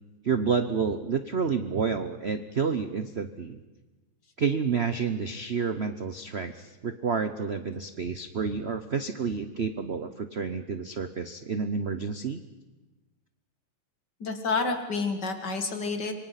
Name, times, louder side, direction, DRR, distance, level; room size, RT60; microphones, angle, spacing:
voice 1, 0.2-3.6 4.4-12.4, right 5 dB, 50° right, 10 dB, 0.7 m, -29 dB
voice 2, 14.2-16.1, left 4 dB, 50° left, 6 dB, 2.6 m, -29 dB
26.5 x 24.0 x 5.8 m, 1.2 s
omnidirectional pair, 2.4 m